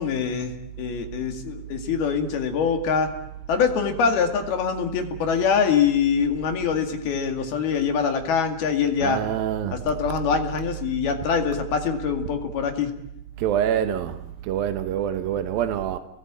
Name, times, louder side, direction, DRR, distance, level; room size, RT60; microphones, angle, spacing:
voice 1, 0.0-3.1 3.5-9.2 9.9-12.9, left 6 dB, 70° left, 4.1 m, -24 dB
voice 2, 9.0-9.8 13.4-16.0, right 10 dB, 70° right, 2.7 m, -26 dB
29.5 x 21.0 x 9.1 m
omnidirectional pair, 4.7 m